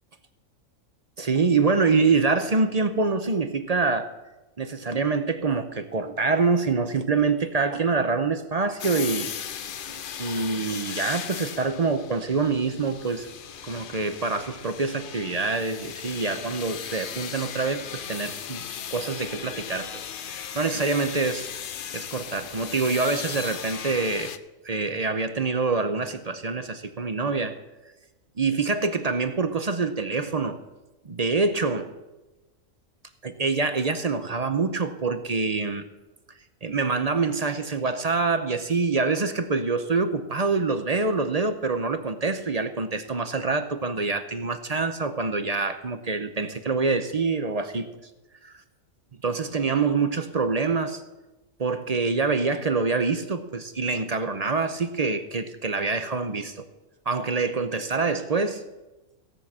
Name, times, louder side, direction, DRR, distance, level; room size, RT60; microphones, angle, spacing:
voice 1, 1.2-4.1 4.6-9.3 10.2-13.3 13.6-18.6 18.9-20.0 20.3-21.5 21.9-24.3 24.6-27.5 28.4-30.6 31.0-31.9 33.2-35.8 36.6-47.9 48.4-48.5 49.2-51.0 51.6-56.7 57.1-58.6, right 4 dB, 40° right, 9 dB, 0.6 m, -25 dB
sound 1, 8.8-24.4, left 8 dB, 55° left, 0.6 m, -37 dB
16.5 x 6.4 x 7.3 m, 1.1 s
omnidirectional pair, 1.4 m